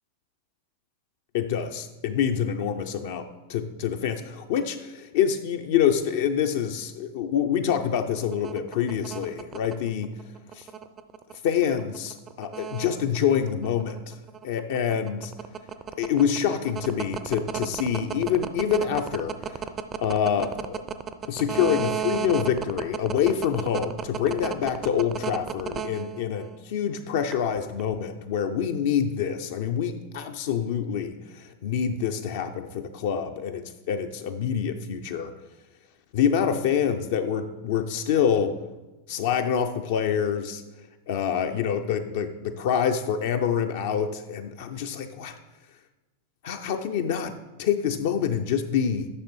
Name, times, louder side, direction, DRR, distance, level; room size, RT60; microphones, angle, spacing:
voice 1, 1.3-10.1 10.5-10.7 11.4-14.2 14.4-15.3 16.0-19.7 20.0-20.8 21.3-35.3 36.1-38.7 39.1-40.6 41.1-45.4 46.4-49.1, left 8 dB, 50° left, 6 dB, 0.6 m, -26 dB
sound 1, 8.2-26.6 27.3-27.9, right 8 dB, 25° right, 0.5 m, -32 dB
13.0 x 6.4 x 3.2 m, 1.1 s
figure-of-eight pair, 90°, 0 cm